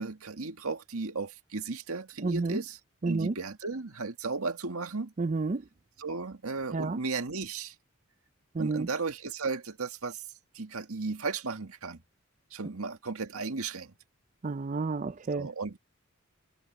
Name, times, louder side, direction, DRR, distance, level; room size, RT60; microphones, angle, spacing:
voice 1, 0.0-2.8 3.0-5.1 6.0-7.8 8.6-10.2 10.5-12.0 12.5-13.9 15.3-15.8, right 4 dB, 85° right, 1.8 m, -35 dB
voice 2, 2.2-2.6 3.0-3.3 5.2-5.6 6.7-7.0 8.5-8.9 14.4-15.5, right 3 dB, 35° right, 0.4 m, -30 dB
head